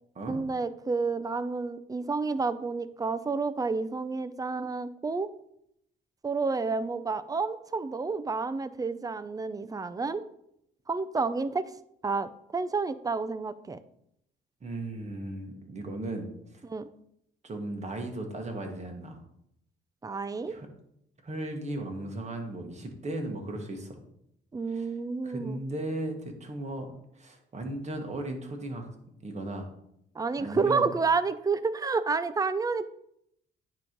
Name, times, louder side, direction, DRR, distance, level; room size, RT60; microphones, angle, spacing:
voice 1, 0.3-5.3 6.2-10.2 10.9-11.6 12.0-13.8 16.6-16.9 20.0-20.6 24.5-25.6 30.1-32.9, right 4 dB, 20° right, 13 dB, 0.4 m, -30 dB
voice 2, 14.6-16.6 17.4-19.2 20.5-20.7 21.2-24.0 24.7-24.9 25.2-26.9 27.1-28.9 29.2-29.7 30.4-30.8, right 1 dB, 35° right, 3 dB, 1.5 m, -36 dB
9.2 x 3.1 x 5.2 m, 0.75 s
cardioid pair, 90°, 20 cm